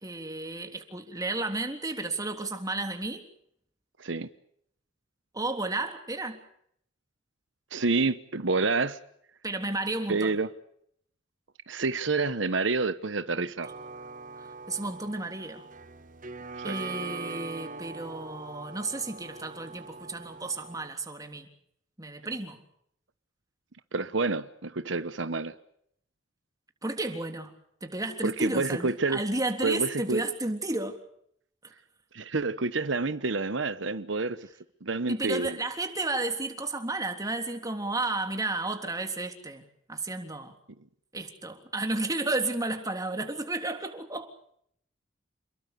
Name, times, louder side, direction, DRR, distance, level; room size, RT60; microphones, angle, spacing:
voice 1, 0.0-3.2 5.3-6.4 9.4-10.4 13.4-13.5 14.4-15.6 16.6-21.5 22.0-22.6 26.8-27.5 27.8-31.0 35.1-39.6 39.9-40.5 41.1-44.3, right 2 dB, 20° right, 5 dB, 3.4 m, -32 dB
voice 2, 7.7-9.0 10.1-10.5 11.7-13.7 16.6-16.8 23.9-25.5 28.2-29.2 29.6-30.2 32.1-34.5 34.8-35.6, right 3 dB, 75° right, 12 dB, 1.1 m, -28 dB
sound 1, 13.6-20.9, right 4 dB, 45° right, 1.4 m, -42 dB
29.5 x 22.0 x 6.9 m, 0.70 s
head